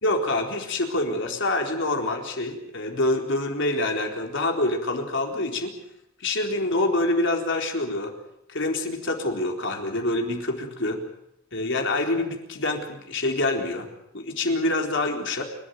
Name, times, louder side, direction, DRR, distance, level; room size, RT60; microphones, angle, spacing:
voice 1, 0.0-5.7 6.2-8.1 8.5-11.0 11.5-13.9 14.1-15.4, left 2 dB, 60° left, 3 dB, 4.1 m, -26 dB
28.5 x 13.5 x 9.4 m, 0.81 s
head